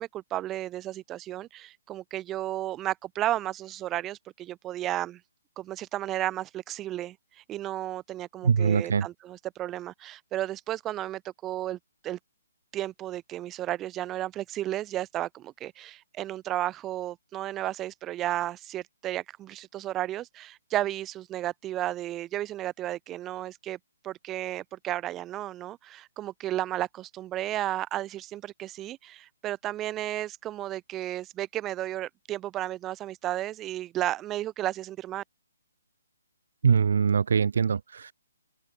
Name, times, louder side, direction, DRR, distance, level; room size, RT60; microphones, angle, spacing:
voice 1, 0.0-5.2 5.6-11.8 12.0-12.2 12.7-23.8 24.0-35.2, right 13 dB, 20° right, 2.0 m, -33 dB
voice 2, 8.4-9.1 36.6-38.1, right 6 dB, 65° right, 0.4 m, -23 dB
open air
hypercardioid pair, 145°, 0 cm